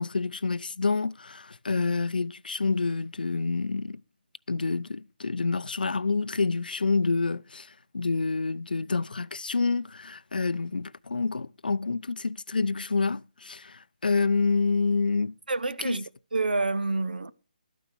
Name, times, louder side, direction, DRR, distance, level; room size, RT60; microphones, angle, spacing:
voice 1, 0.0-4.0 4.5-15.4 15.8-16.0, left 4 dB, 85° left, 0.6 m, -28 dB
voice 2, 15.5-16.0 16.3-17.3, right 3 dB, 85° right, 1.0 m, -28 dB
13.0 x 9.3 x 4.8 m
hypercardioid pair, 165°, 5 cm